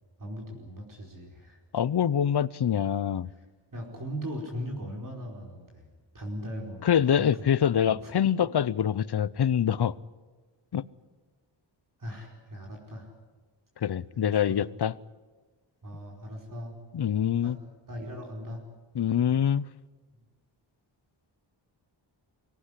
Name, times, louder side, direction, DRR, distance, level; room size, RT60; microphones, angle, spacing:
voice 1, 0.2-1.6 3.7-5.9 6.1-6.9 7.2-7.3 7.9-8.1 8.4-8.5 12.0-13.1 14.1-14.6 15.8-16.7 17.4-17.5 17.9-18.6, equal, 45° right, 0 dB, 4.8 m, -39 dB
voice 2, 1.7-3.3 6.8-9.9 10.7-10.8 13.8-14.9 16.9-17.6 19.0-19.7, left 9 dB, 55° left, 20 dB, 0.7 m, -25 dB
24.5 x 18.5 x 9.9 m, 1.3 s
wide cardioid pair, 135°, 46 cm